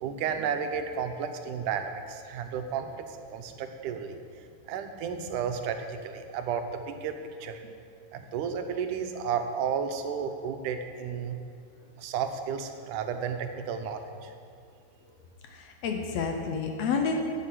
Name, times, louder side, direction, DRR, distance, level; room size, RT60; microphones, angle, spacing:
voice 1, 0.0-7.6 8.1-11.4 12.0-14.3, right 7 dB, 85° right, 7 dB, 2.3 m, -33 dB
voice 2, 15.4-17.2, left 5 dB, 70° left, 3 dB, 1.8 m, -29 dB
9.9 x 7.6 x 7.7 m, 2.4 s
omnidirectional pair, 3.5 m